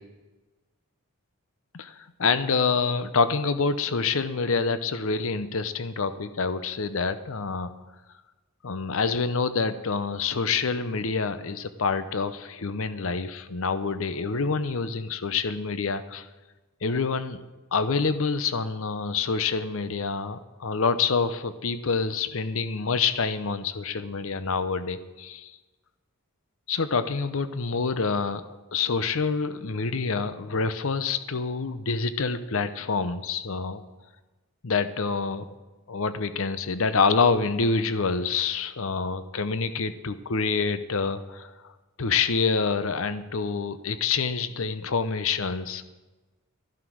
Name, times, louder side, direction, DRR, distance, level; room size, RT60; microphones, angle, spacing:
voice 1, 2.2-7.7 8.6-16.2 16.8-17.4 17.7-25.5 26.7-33.8 34.6-35.5 35.9-41.7 42.0-45.8, left 4 dB, 65° left, 12 dB, 0.7 m, -27 dB
13.5 x 11.5 x 6.2 m, 1.2 s
head